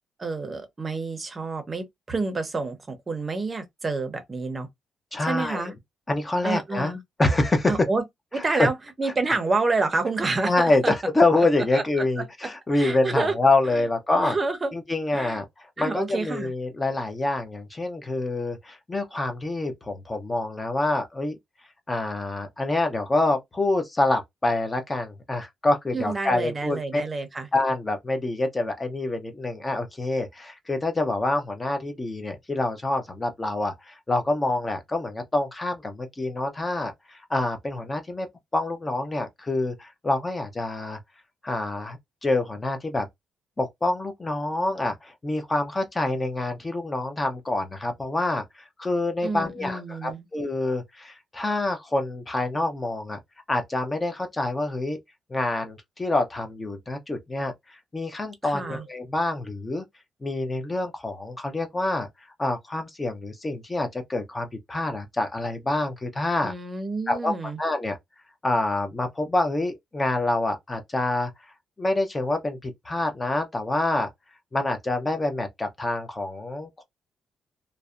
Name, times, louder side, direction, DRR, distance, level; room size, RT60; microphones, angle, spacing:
voice 1, 0.2-4.7 5.3-5.7 6.4-7.0 7.7-8.0 8.3-10.9 11.3-11.4 11.7-11.8 12.7-13.3 13.7-13.9 14.1-14.7 15.1-15.4 15.8-16.5 25.9-27.5 49.2-50.2 58.4-58.8 66.4-67.6, right 3 dB, 25° right, 0.7 m, -28 dB
voice 2, 5.1-5.7 6.1-6.9 7.2-7.7 8.4-8.7 10.4-14.4 14.7-15.4 15.8-21.4 21.9-27.0 27.5-38.3 38.5-41.0 41.4-43.1 43.6-53.2 53.5-55.0 55.3-59.9 60.2-62.1 62.4-66.5 67.1-68.0 68.4-71.3 71.8-74.1 74.5-76.8, left 2 dB, 20° left, 0.6 m, -26 dB
2.6 x 2.1 x 2.3 m
cardioid pair, 140°, 0 cm